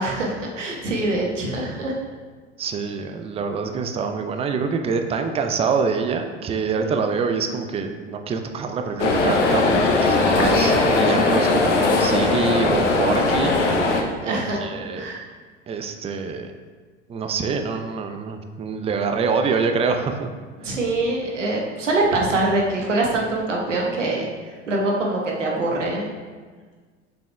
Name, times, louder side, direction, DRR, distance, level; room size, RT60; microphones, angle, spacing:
voice 1, 0.0-2.0 12.5-12.7 14.2-14.7 14.9-15.2 20.6-24.3 24.7-26.1, right 2 dB, 85° right, -1 dB, 1.2 m, -24 dB
voice 2, 2.6-13.5 14.2-15.1 15.7-16.5 17.1-20.3, right 5 dB, 15° right, 6 dB, 0.4 m, -25 dB
sound 1, 9.0-14.0, left 3 dB, 80° left, 0.9 m, -19 dB
6.9 x 6.1 x 2.2 m, 1.5 s
hypercardioid pair, 80°, 36 cm